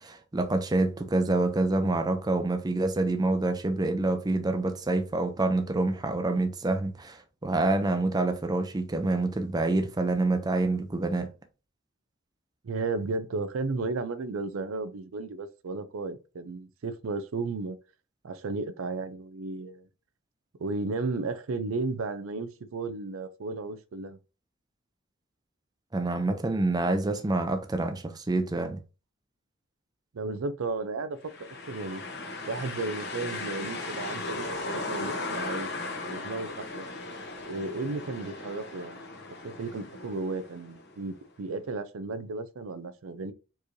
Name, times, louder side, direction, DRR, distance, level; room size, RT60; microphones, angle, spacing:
voice 1, 0.0-11.3 25.9-28.8, right 2 dB, 20° right, 0.5 m, -27 dB
voice 2, 12.6-17.8 18.2-19.9 20.6-24.2 30.1-32.0 32.5-35.7 36.0-36.9 37.5-39.1 39.4-43.3, right 3 dB, 90° right, 0.5 m, -34 dB
sound 1, 31.2-41.0, left 3 dB, 55° left, 1.0 m, -37 dB
4.5 x 3.1 x 2.6 m
head